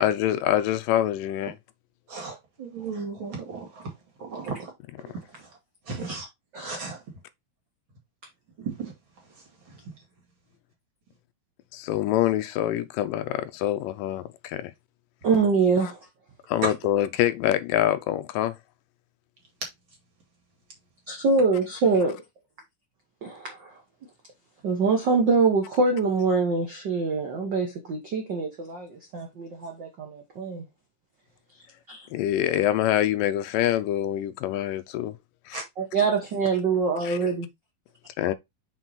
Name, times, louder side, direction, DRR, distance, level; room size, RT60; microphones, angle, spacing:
voice 1, 0.0-1.5 11.7-14.7 15.8-15.9 16.5-18.5 32.1-35.1 35.5-35.6 37.0-37.2 38.2-38.3, left 12 dB, 80° left, 2.2 m, -25 dB
voice 2, 2.1-3.9 4.2-4.7 5.3-5.5 5.9-6.3 6.5-7.0 8.6-8.9 9.7-9.8 16.6-16.7 35.5-35.6, right 4 dB, 40° right, 2.4 m, -34 dB
voice 3, 15.2-16.0 21.1-22.2 23.2-23.7 24.6-30.6 31.9-32.1 35.8-37.5, right 4 dB, 75° right, 1.0 m, -24 dB
6.1 x 4.3 x 4.1 m
omnidirectional pair, 4.0 m